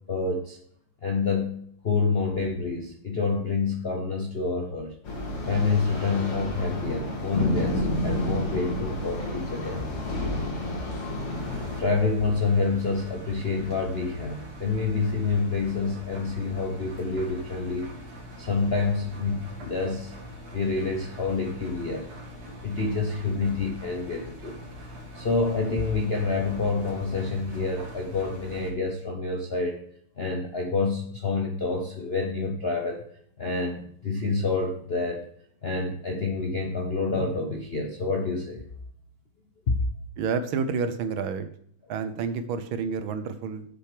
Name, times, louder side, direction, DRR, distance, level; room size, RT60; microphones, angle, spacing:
voice 1, 0.1-0.6 1.0-4.9 5.4-9.9 11.8-17.9 18.4-20.1 20.5-22.1 22.6-24.6 25.1-29.8 30.2-33.0 33.4-35.2 35.6-38.6 39.7-39.8, left 4 dB, 55° left, 1 dB, 0.6 m, -27 dB
sound 1, 5.0-11.8, left 1 dB, 90° left, 3.2 m, -30 dB
Engine, 11.3-28.7, equal, 45° right, 2.2 m, -43 dB
voice 2, 40.2-41.5 41.9-43.7, right 5 dB, 70° right, 10 dB, 1.5 m, -29 dB
7.8 x 6.7 x 4.9 m, 0.64 s
omnidirectional pair, 2.4 m